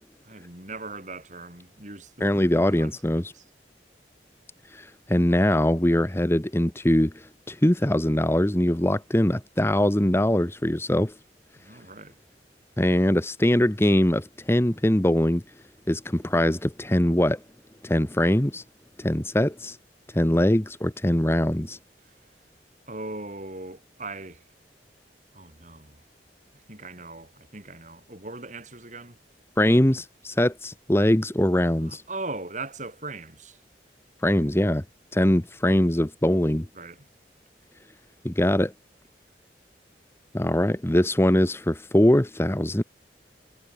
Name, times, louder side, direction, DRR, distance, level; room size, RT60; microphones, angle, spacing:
voice 1, 0.2-2.5 2.8-2.9 3.3-3.4 11.6-12.2 22.9-24.4 25.3-26.0 26.7-29.2 31.9-33.6 36.7-37.1, right 2 dB, 45° right, 6.1 m, -39 dB
voice 2, 2.2-3.3 4.7-11.1 12.8-15.4 15.9-17.4 17.8-18.6 19.0-19.8 20.1-21.8 29.6-32.0 34.2-34.8 35.1-36.7 38.2-38.7 40.3-42.8, left 1 dB, 15° left, 1.0 m, -22 dB
head